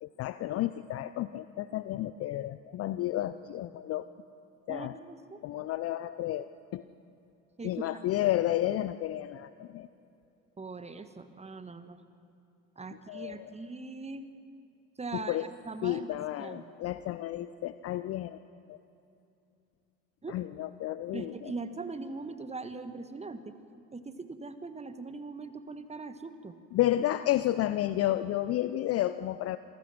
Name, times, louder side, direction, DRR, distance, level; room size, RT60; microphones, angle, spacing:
voice 1, 0.0-4.1 4.7-4.9 5.4-6.8 7.6-9.9 13.1-13.4 15.1-15.4 15.8-18.4 18.7-18.8 20.3-21.5 26.7-29.6, left 14 dB, 35° left, 14 dB, 0.5 m, -31 dB
voice 2, 4.7-5.4 7.6-7.8 10.6-12.0 12.8-14.3 15.0-16.1 16.4-16.6 20.2-20.5 21.1-23.5 23.9-26.5, right 3 dB, 15° right, 10 dB, 1.4 m, -41 dB
26.0 x 16.0 x 6.2 m, 2.7 s
figure-of-eight pair, 65°, 44 cm